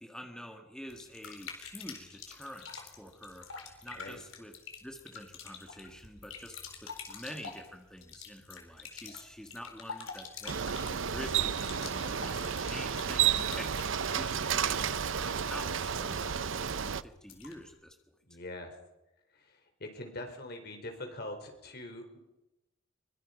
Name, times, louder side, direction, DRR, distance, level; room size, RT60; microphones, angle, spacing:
voice 1, 0.0-18.0, equal, 5° left, 3 dB, 1.7 m, -47 dB
sound 1, 0.9-17.7, left 5 dB, 85° left, 4.2 m, -47 dB
Bicycle, 10.5-17.0, right 8 dB, 70° right, 0.7 m, -31 dB
voice 2, 18.2-18.7 19.3-22.2, left 1 dB, 55° left, 4 dB, 4.6 m, -43 dB
24.0 x 24.0 x 5.4 m, 0.95 s
head